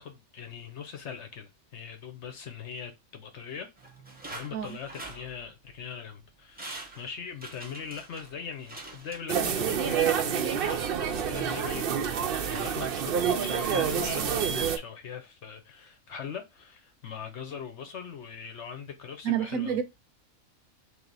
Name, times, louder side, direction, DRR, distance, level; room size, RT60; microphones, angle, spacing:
voice 1, 0.0-3.7 4.3-10.8 11.1-19.8, left 7 dB, 60° left, 1.0 m, -41 dB
sound 1, 3.8-5.8 6.2-6.3 6.5-9.7 10.1-10.2, right 2 dB, 10° right, 0.6 m, -45 dB
sound 2, 9.3-14.8, right 8 dB, 60° right, 0.6 m, -28 dB
voice 2, 19.2-19.8, right 9 dB, 80° right, 1.1 m, -28 dB
3.5 x 2.8 x 3.9 m
omnidirectional pair, 1.4 m